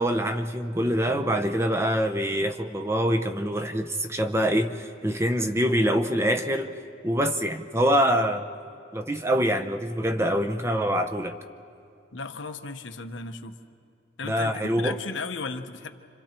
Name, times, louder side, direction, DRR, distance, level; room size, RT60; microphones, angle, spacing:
voice 1, 0.0-6.7 7.0-8.5 8.9-11.4 14.3-15.0, equal, 15° right, 7 dB, 0.7 m, -25 dB
voice 2, 12.1-13.5 14.2-15.9, left 4 dB, 80° left, 7 dB, 1.0 m, -35 dB
29.5 x 26.0 x 4.5 m, 2.4 s
head